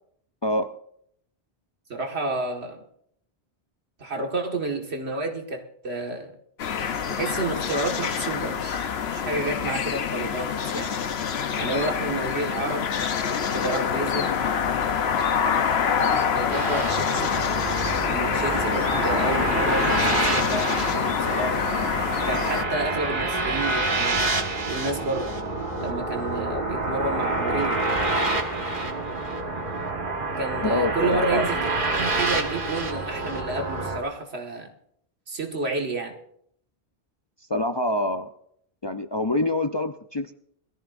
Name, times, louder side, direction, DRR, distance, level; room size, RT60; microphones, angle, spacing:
voice 1, 1.9-2.8 4.0-6.3 7.1-8.9 9.1-11.0 11.6-12.9 13.2-14.4 16.3-17.4 18.0-21.6 22.2-24.4 24.7-25.3 25.8-27.8 30.4-31.7 32.0-34.7 35.3-36.2, right 2 dB, 80° right, 2 dB, 2.1 m, -30 dB
sound 1, 6.6-22.6, left 7 dB, 75° left, 1.1 m, -26 dB
sound 2, 16.5-34.0, right 2 dB, 50° right, 1.8 m, -27 dB
voice 2, 30.6-31.5 37.5-38.3 38.8-40.3, left 1 dB, 35° left, 7 dB, 0.5 m, -25 dB
22.0 x 14.0 x 2.6 m, 0.68 s
omnidirectional pair, 1.1 m